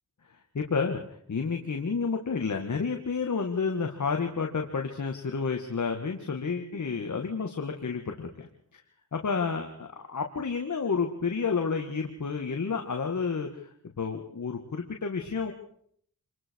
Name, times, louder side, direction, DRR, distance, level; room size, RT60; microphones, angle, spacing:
voice 1, 0.5-8.5 9.1-13.7 14.0-15.5, left 5 dB, 55° left, 3 dB, 2.3 m, -30 dB
27.0 x 21.0 x 4.9 m, 0.63 s
cardioid pair, 60°, 35 cm